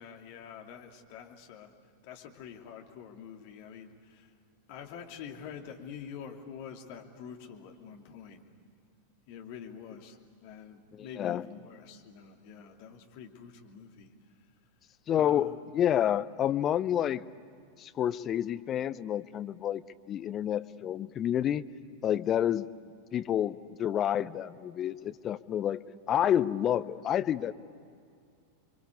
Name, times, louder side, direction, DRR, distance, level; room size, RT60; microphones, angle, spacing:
voice 1, 0.0-1.8 2.0-4.3 4.7-8.5 9.3-14.1 15.1-15.6, left 7 dB, 45° left, 2 dB, 2.8 m, -46 dB
voice 2, 15.1-17.2 17.8-21.7 22.0-22.7 23.1-27.5, left 10 dB, 30° left, 12 dB, 0.8 m, -29 dB
29.5 x 23.5 x 8.4 m, 2.3 s
figure-of-eight pair, 90°, 0 cm